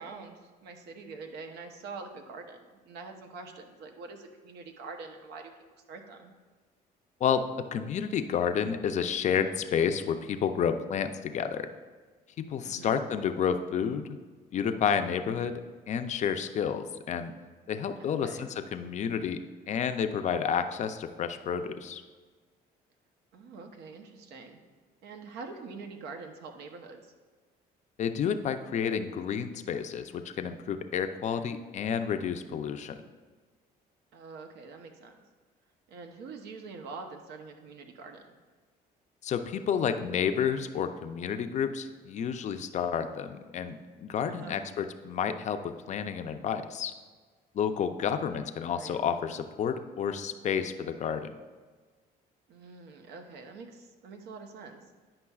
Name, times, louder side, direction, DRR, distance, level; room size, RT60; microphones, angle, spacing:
voice 1, 0.0-5.5 5.9-6.3 12.6-13.0 18.0-18.5 23.3-24.6 25.0-27.1 34.1-35.1 35.9-38.4 44.3-44.7 48.7-49.0 52.5-54.8, right 4 dB, 80° right, 5 dB, 0.8 m, -45 dB
voice 2, 7.2-11.7 12.4-14.2 14.5-15.5 15.9-17.3 17.7-19.4 19.7-22.0 28.0-33.0 39.2-46.9 47.5-51.3, left 7 dB, 45° left, 8 dB, 0.4 m, -30 dB
9.6 x 5.5 x 2.3 m, 1.4 s
cardioid pair, 110°, 17 cm